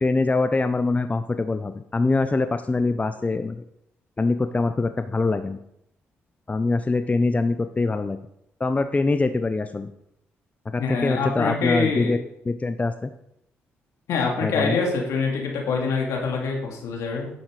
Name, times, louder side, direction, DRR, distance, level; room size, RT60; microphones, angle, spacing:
voice 1, 0.0-3.6 4.2-5.6 6.5-8.2 8.6-9.9 10.7-12.2 12.4-13.1 14.4-14.8, left 3 dB, 25° left, 9 dB, 0.7 m, -23 dB
voice 2, 10.8-12.1 14.1-17.3, left 4 dB, 75° left, 0 dB, 2.7 m, -25 dB
10.5 x 7.2 x 4.9 m, 0.77 s
supercardioid pair, 50°, 5 cm